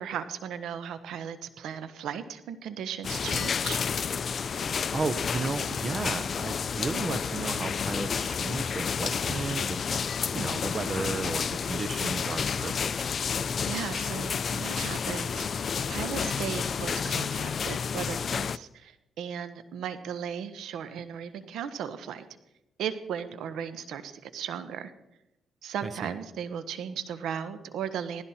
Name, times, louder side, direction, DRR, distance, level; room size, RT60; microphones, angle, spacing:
voice 1, 0.0-3.8 13.7-22.3 22.8-24.9 25.6-28.2, right 8 dB, 80° right, 11 dB, 1.3 m, -36 dB
sound 1, 3.0-18.6, left 6 dB, 50° left, 0.5 m, -30 dB
voice 2, 4.5-12.9 25.8-26.1, right 4 dB, 35° right, 12 dB, 1.0 m, -34 dB
18.0 x 15.0 x 4.4 m, 0.89 s
cardioid pair, 90°, 0 cm